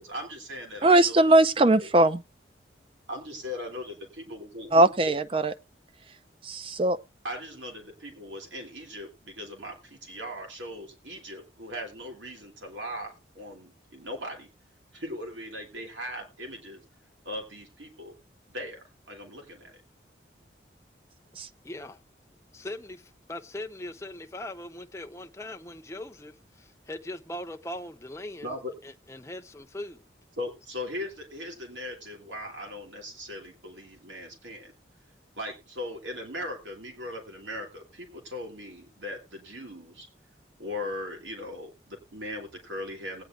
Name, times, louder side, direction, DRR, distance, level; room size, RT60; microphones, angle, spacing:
voice 1, 0.0-1.2 1.6-1.9 3.1-3.9 4.3-5.1 7.2-14.5 14.9-16.8 17.2-18.1 18.5-19.8 28.4-28.7 30.4-34.7 35.4-40.1 40.6-43.2, left 1 dB, 90° right, 2.8 m, -39 dB
voice 2, 0.8-2.2 4.7-5.5 6.4-7.0 21.4-21.5, right 2 dB, 30° right, 0.5 m, -20 dB
voice 3, 21.6-22.0 22.5-30.0, left 1 dB, 15° left, 0.6 m, -40 dB
19.5 x 9.2 x 2.5 m
head